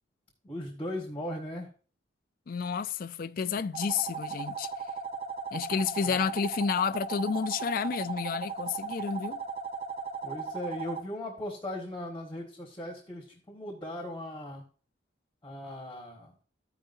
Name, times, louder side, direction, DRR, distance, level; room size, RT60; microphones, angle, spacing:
voice 1, 0.4-1.7 6.0-6.2 10.2-14.6 15.4-16.3, left 1 dB, 10° left, 1.5 m, -38 dB
voice 2, 2.5-4.7 5.5-9.4, left 6 dB, 45° left, 0.3 m, -30 dB
sound 1, 3.7-11.0, right 5 dB, 30° right, 0.8 m, -37 dB
15.0 x 5.0 x 2.6 m
head